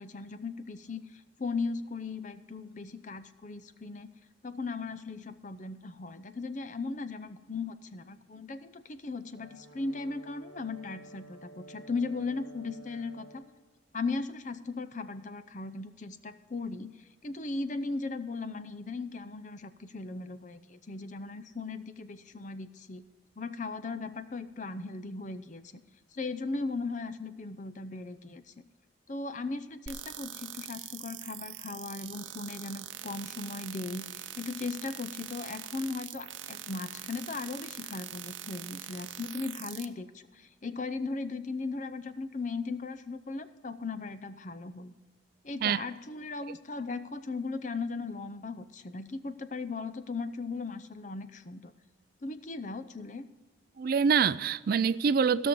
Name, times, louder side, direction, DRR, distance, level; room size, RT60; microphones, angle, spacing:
voice 1, 0.0-4.1 4.4-13.5 13.9-17.0 17.2-23.0 23.4-25.6 26.1-28.7 29.1-44.9 45.4-51.7 52.2-53.3, left 3 dB, 40° left, 0.6 m, -37 dB
Brass instrument, 9.3-13.5, right 2 dB, 65° left, 2.1 m, -51 dB
sound 1, 29.9-39.8, right 11 dB, 80° right, 0.7 m, -43 dB
voice 2, 53.8-55.5, right 6 dB, 50° right, 0.3 m, -25 dB
16.0 x 6.3 x 5.3 m
head